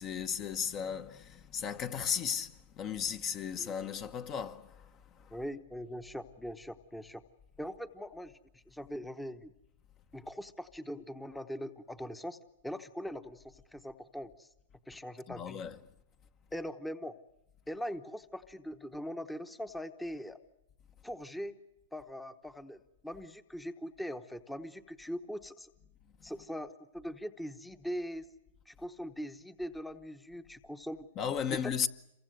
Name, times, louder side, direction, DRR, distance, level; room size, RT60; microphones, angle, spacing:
voice 1, 0.0-5.4 15.3-15.8 31.2-31.9, left 7 dB, 30° left, 0.9 m, -35 dB
voice 2, 5.3-7.2 7.6-8.4 8.7-9.5 10.1-12.4 12.6-14.5 14.9-15.6 16.5-17.1 17.7-20.4 21.0-21.6 21.9-25.7 26.2-28.2 28.7-31.1 31.5-31.6, equal, 5° left, 1.0 m, -41 dB
27.5 x 23.5 x 7.9 m
hypercardioid pair, 150°, 0 cm